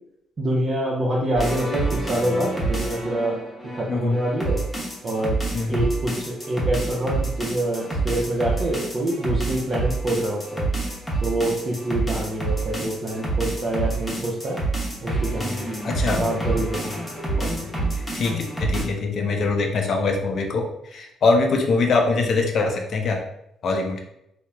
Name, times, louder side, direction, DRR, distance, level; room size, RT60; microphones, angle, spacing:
voice 1, 0.4-3.4 3.7-4.7 5.0-5.4 5.7-10.7 11.2-14.6 15.0-15.7 16.1-17.0, right 1 dB, 45° right, -4 dB, 0.5 m, -26 dB
sound 1, 1.4-18.8, right 3 dB, 15° left, 0.9 m, -27 dB
voice 2, 3.9-4.2 5.5-5.9 15.8-16.3 17.4-17.7 18.1-23.2 23.6-24.0, left 3 dB, 60° left, 3 dB, 0.5 m, -23 dB
3.0 x 2.0 x 2.3 m, 0.80 s
supercardioid pair, 70°, 0 cm